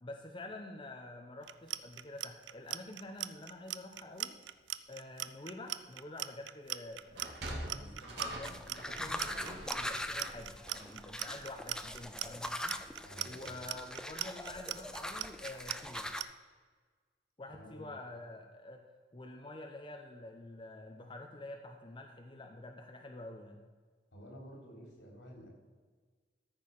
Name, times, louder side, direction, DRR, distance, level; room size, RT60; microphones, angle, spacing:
voice 1, 0.0-4.4 4.9-7.3 7.8-12.8 13.2-16.1 17.4-18.9 19.1-23.6, left 2 dB, 30° left, 3 dB, 0.9 m, -48 dB
Clock, 1.4-16.3, right 14 dB, 85° right, 0.5 m, -40 dB
Sliding door, 7.0-11.7, right 1 dB, 65° right, 2.5 m, -45 dB
voice 2, 7.6-8.1 13.0-13.6 17.5-18.0 24.1-25.5, equal, 80° left, 0 dB, 3.9 m, -52 dB
sound 1, 8.4-16.2, left 1 dB, 5° left, 0.6 m, -42 dB
13.5 x 7.1 x 5.5 m, 1.5 s
head